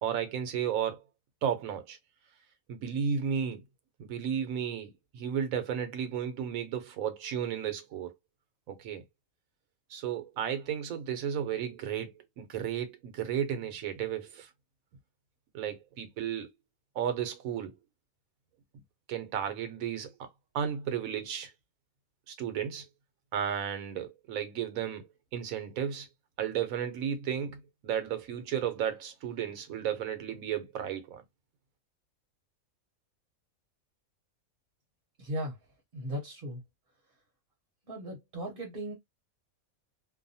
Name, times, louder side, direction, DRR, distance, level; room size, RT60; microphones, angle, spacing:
voice 1, 0.0-1.0 1.4-2.0 2.7-3.6 4.0-8.1 8.7-9.0 9.9-14.5 15.5-16.5 16.9-17.7 19.1-20.3 20.5-21.5 22.3-22.9 23.3-25.1 25.3-26.1 26.4-31.2, right 8 dB, 75° right, 1.0 m, -33 dB
voice 2, 35.2-35.6 35.9-36.6 37.9-38.9, equal, 45° right, 0.8 m, -37 dB
2.6 x 2.2 x 2.6 m
omnidirectional pair, 1.5 m